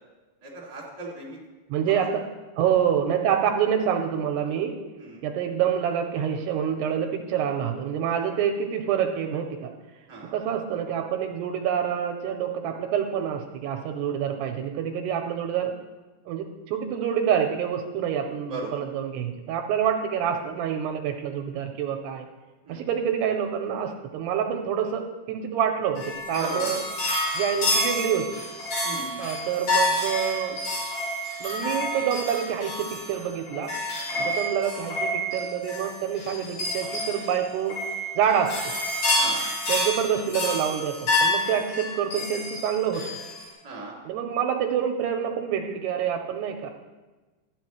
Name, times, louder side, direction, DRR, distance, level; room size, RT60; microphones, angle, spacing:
voice 1, 0.4-1.4 1.9-2.1 5.0-5.2 10.1-10.3 18.5-18.7 22.7-22.8 26.3-26.8 28.8-29.2 34.1-34.3 39.2-39.5 43.6-43.9, right 2 dB, 15° right, -4 dB, 1.6 m, -37 dB
voice 2, 1.7-2.3 2.6-4.8 5.2-9.7 10.3-15.7 16.3-22.3 22.7-26.8 27.4-28.2 29.2-30.6 31.4-33.7 34.2-37.8 38.2-38.5 39.7-43.0 44.1-46.7, right 8 dB, 85° right, 4 dB, 2.7 m, -27 dB
sound 1, 26.0-43.4, left 1 dB, 55° left, 5.2 m, -28 dB
13.0 x 8.9 x 3.2 m, 1.2 s
omnidirectional pair, 4.9 m